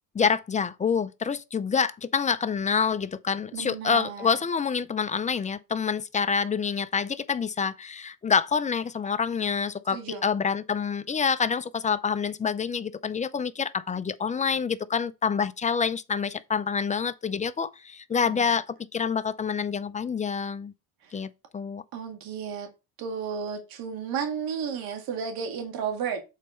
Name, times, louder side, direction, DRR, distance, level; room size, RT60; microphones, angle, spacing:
voice 1, 0.1-20.7 21.1-21.8, left 6 dB, 20° left, 0.5 m, -27 dB
voice 2, 3.5-4.4 9.9-10.2 18.2-18.5 21.0-21.2 21.9-22.7 23.0-26.2, right 6 dB, 75° right, 2.0 m, -33 dB
7.4 x 4.2 x 5.5 m
cardioid pair, 125°, 36 cm